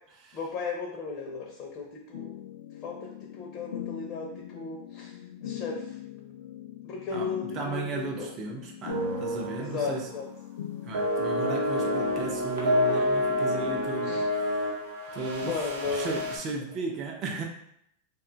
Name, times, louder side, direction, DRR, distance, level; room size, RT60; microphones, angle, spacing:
voice 1, 0.3-2.4 2.8-5.1 5.4-5.9 6.8-8.3 9.6-10.3 14.0-14.3 15.4-16.1, left 4 dB, 35° left, -2 dB, 0.6 m, -35 dB
sound 1, 2.1-11.1, left 11 dB, 90° left, 0.3 m, -41 dB
voice 2, 7.1-10.1 10.8-14.8 15.1-15.6 15.9-17.4, right 3 dB, 30° right, 1 dB, 0.5 m, -36 dB
sound 2, 8.9-9.7 10.0-10.2 10.9-16.4, left 1 dB, 85° right, 0.8 m, -28 dB
2.5 x 2.3 x 3.8 m, 0.73 s
supercardioid pair, 150°, 0 cm